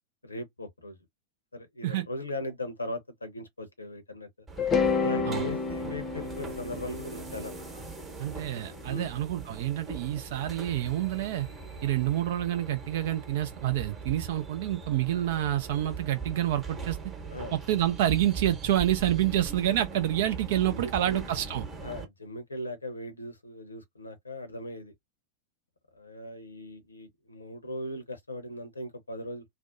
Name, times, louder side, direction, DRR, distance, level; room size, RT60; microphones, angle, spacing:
voice 1, 0.2-1.0 1.5-4.3 5.0-7.5 8.9-9.1 11.8-12.0 17.3-17.5 20.6-21.2 21.8-24.9 25.9-29.4, left 1 dB, 80° left, 0.7 m, -39 dB
sound 1, 4.5-22.0, right 4 dB, 20° right, 0.9 m, -41 dB
sound 2, 4.6-8.7, left 5 dB, 25° left, 0.6 m, -30 dB
voice 2, 8.2-11.5 11.8-17.0 17.5-21.6, right 12 dB, 55° right, 0.3 m, -28 dB
2.5 x 2.1 x 2.5 m
figure-of-eight pair, 90°, 0 cm